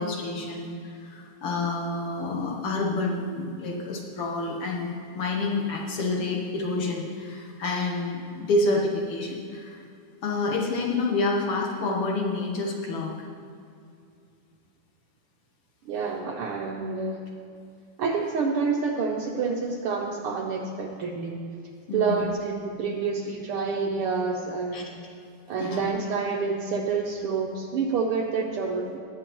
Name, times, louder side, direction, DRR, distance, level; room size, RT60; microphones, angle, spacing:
voice 1, 0.0-9.8 10.2-13.1 21.9-22.3 24.7-24.8 25.6-25.9, left 2 dB, 60° left, -1 dB, 1.8 m, -28 dB
voice 2, 15.9-17.2 18.0-21.4 21.9-24.9 25.5-29.0, right 5 dB, 80° right, 0 dB, 1.2 m, -28 dB
19.5 x 7.4 x 3.0 m, 2.4 s
omnidirectional pair, 3.4 m